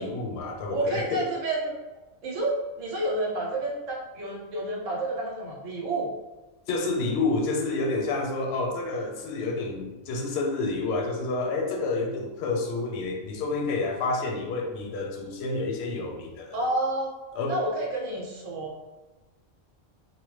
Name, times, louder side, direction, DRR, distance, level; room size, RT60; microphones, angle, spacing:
voice 1, 0.0-1.2 6.7-16.6 17.3-17.6, left 3 dB, 65° left, 1 dB, 0.8 m, -29 dB
voice 2, 0.7-1.7 2.2-6.1 16.5-17.1 17.5-18.8, right 2 dB, 80° right, -2 dB, 1.1 m, -29 dB
2.9 x 2.1 x 3.1 m, 1.1 s
omnidirectional pair, 1.3 m